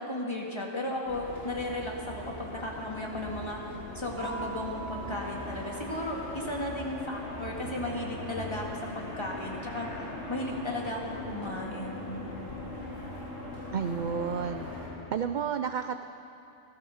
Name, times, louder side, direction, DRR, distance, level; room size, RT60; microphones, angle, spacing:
voice 1, 0.0-3.6 4.0-8.7 8.9-9.9 10.3-12.5, left 1 dB, 25° left, -2 dB, 2.0 m, -35 dB
sound 1, 1.0-14.9, left 2 dB, 40° left, 4.7 m, -40 dB
sound 2, 4.2-6.9, right 5 dB, 10° right, 4.0 m, -43 dB
voice 2, 13.7-14.6 15.1-16.0, right 7 dB, 60° right, 9 dB, 0.5 m, -31 dB
16.5 x 12.5 x 7.1 m, 2.7 s
omnidirectional pair, 1.2 m